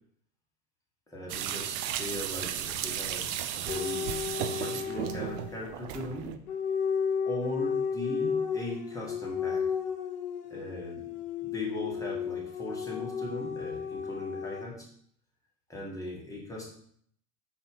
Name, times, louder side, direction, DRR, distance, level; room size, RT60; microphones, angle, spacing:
voice 1, 1.1-4.3 4.6-6.3 7.3-9.6 10.5-11.1 11.4-14.9 15.7-16.7, left 1 dB, 5° left, -3 dB, 1.3 m, -39 dB
sound 1, 1.3-6.4, right 10 dB, 55° right, 0.5 m, -34 dB
sound 2, 3.7-5.7 6.5-14.6, left 6 dB, 90° left, 0.5 m, -33 dB
4.0 x 2.7 x 3.7 m, 0.63 s
hypercardioid pair, 85°, 45 cm